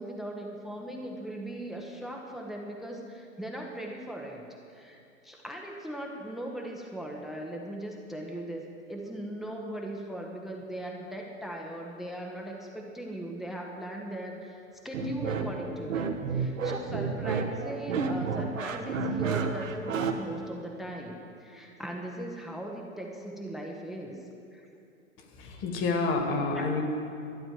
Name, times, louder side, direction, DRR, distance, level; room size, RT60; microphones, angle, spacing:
voice 1, 0.0-4.4 4.7-14.6 14.8-24.7 26.5-26.7, right 1 dB, ahead, 1 dB, 0.9 m, -39 dB
sound 1, 14.9-20.1, right 5 dB, 70° right, 1.3 m, -30 dB
voice 2, 25.3-26.8, left 3 dB, 30° left, 3 dB, 1.9 m, -28 dB
12.5 x 9.4 x 7.6 m, 2.5 s
figure-of-eight pair, 110°, 41 cm